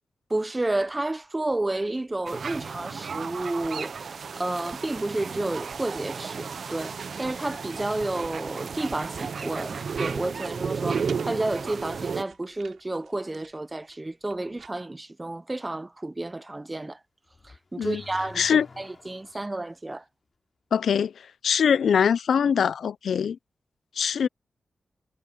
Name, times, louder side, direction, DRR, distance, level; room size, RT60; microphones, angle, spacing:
voice 1, 0.3-17.0 17.4-18.5 18.8-20.0, right 2 dB, 20° right, 0.8 m, -31 dB
sound 1, 0.6-14.7, right 7 dB, 85° right, 5.1 m, -54 dB
sound 2, 2.3-12.2, right 6 dB, 60° right, 0.6 m, -33 dB
Car / Accelerating revving vroom, 17.3-19.5, left 4 dB, 40° left, 5.2 m, -48 dB
voice 2, 18.4-18.7 20.7-23.4 24.0-24.3, left 7 dB, 85° left, 0.5 m, -23 dB
wide cardioid pair, 130°, 0 cm